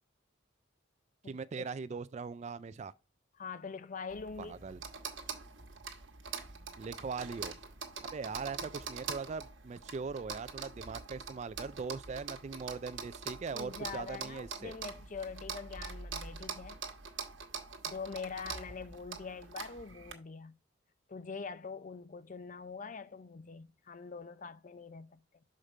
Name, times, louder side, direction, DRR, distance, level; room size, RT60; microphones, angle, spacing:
voice 1, 1.3-2.9 4.4-4.8 6.8-7.5 8.1-14.7, right 5 dB, 35° right, 0.3 m, -40 dB
voice 2, 3.3-4.6 13.5-16.8 17.8-20.5 21.1-25.4, left 5 dB, 40° left, 0.5 m, -44 dB
sound 1, 4.1-20.1, right 5 dB, 75° right, 1.3 m, -44 dB
6.5 x 5.1 x 4.3 m
head